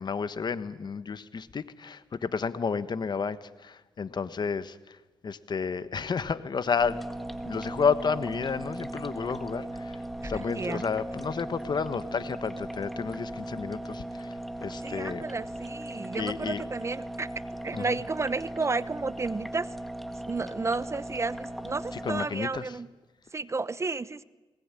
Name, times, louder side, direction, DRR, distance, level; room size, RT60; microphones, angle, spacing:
voice 1, 0.0-5.0 5.2-7.0 7.4-10.0 10.2-14.3 14.6-15.2 16.1-16.6 17.7-18.0 22.0-22.7, left 5 dB, 50° left, 13 dB, 1.4 m, -31 dB
sound 1, 6.8-22.3, right 1 dB, ahead, 1.6 m, -38 dB
voice 2, 10.2-10.8 14.8-17.3 17.6-19.7 20.3-22.9 23.3-24.2, right 3 dB, 30° right, 17 dB, 0.9 m, -32 dB
21.0 x 19.0 x 9.9 m, 1.2 s
cardioid pair, 70°, 10 cm